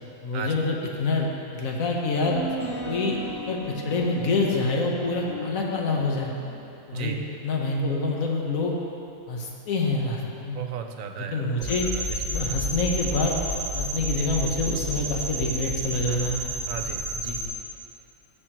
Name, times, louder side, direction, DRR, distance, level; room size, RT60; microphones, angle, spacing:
voice 1, 0.2-2.4 2.8-3.2 3.5-6.3 6.9-7.2 7.4-8.8 9.3-10.6 11.2-11.9 12.2-13.4 13.7-16.4 17.2-17.4, left 3 dB, 75° left, -1 dB, 1.4 m, -26 dB
sound 1, 2.2-6.8, right 1 dB, 60° left, 2.0 m, -37 dB
voice 2, 10.5-12.6 16.7-17.0, right 7 dB, 70° right, 5 dB, 1.1 m, -35 dB
sound 2, 11.6-17.4, right 1 dB, 30° left, 2.0 m, -30 dB
15.0 x 6.9 x 3.0 m, 2.7 s
omnidirectional pair, 1.5 m